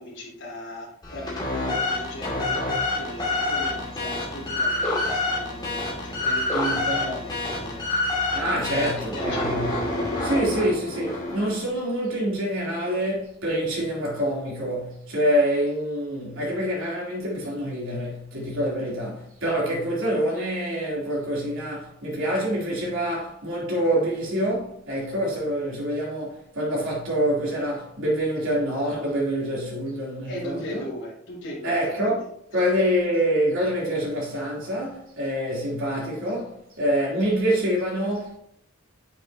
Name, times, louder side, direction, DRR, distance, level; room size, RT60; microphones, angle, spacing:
voice 1, 0.0-7.8 8.5-9.5 30.2-32.1 32.5-32.6, left 1 dB, 70° left, 3.1 m, -38 dB
sound 1, 1.0-11.6, left 2 dB, 20° left, 2.4 m, -27 dB
voice 2, 6.5-7.1 8.3-9.7 10.2-30.8 31.6-32.3 32.5-38.4, equal, 90° right, 3.6 m, -26 dB
8.5 x 7.2 x 3.0 m
head